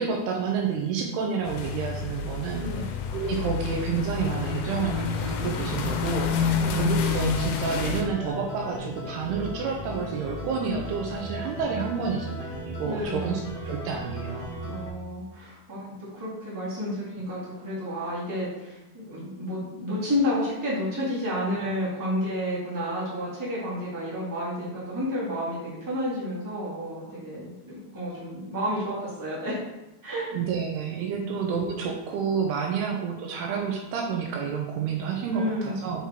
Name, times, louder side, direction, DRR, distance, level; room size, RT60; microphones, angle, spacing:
voice 1, 0.0-14.6 30.3-36.1, right 6 dB, 80° right, 1 dB, 2.5 m, -30 dB
sound 1, 1.4-8.0, left 5 dB, 90° left, 3.0 m, -28 dB
voice 2, 6.3-6.8 12.8-13.4 14.7-15.8 16.1-29.6 30.0-30.2 31.2-31.3 32.7-32.8 35.3-35.8, left 1 dB, 15° right, -9 dB, 0.6 m, -31 dB
sound 2, 7.3-14.9, left 1 dB, 70° left, 1.3 m, -37 dB
7.3 x 3.5 x 4.4 m, 0.95 s
omnidirectional pair, 5.0 m